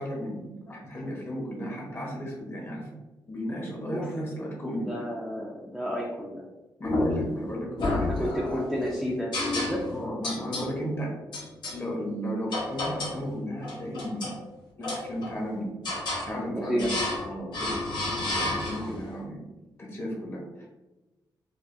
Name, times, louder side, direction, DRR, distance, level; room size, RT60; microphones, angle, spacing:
voice 1, 0.0-2.9 3.3-4.9 6.8-8.6 9.8-11.1 11.7-14.4 14.8-15.7 16.2-16.9 17.2-19.4 19.8-20.7, equal, 30° left, -2 dB, 1.1 m, -34 dB
voice 2, 4.9-6.4 8.0-9.8 16.6-16.9 18.9-19.0, equal, ahead, -4 dB, 0.6 m, -31 dB
sound 1, 6.8-7.4 7.8-8.7 9.3-10.0 10.2-10.7 11.3-11.8 12.5-13.2 13.6-14.4 14.8-15.4 15.8-16.3 16.8-17.3 17.5-19.0, left 2 dB, 70° left, 1.2 m, -30 dB
4.7 x 2.3 x 2.6 m, 1.1 s
cardioid pair, 100°, 8 cm